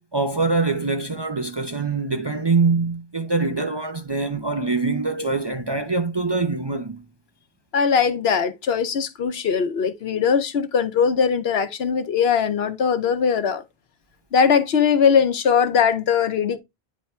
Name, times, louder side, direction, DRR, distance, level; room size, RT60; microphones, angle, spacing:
voice 1, 0.1-7.0, right 3 dB, 30° right, 0.5 m, -24 dB
voice 2, 7.7-13.6 14.3-16.6, left 6 dB, 70° left, 1.0 m, -20 dB
9.4 x 3.4 x 4.3 m
omnidirectional pair, 1.1 m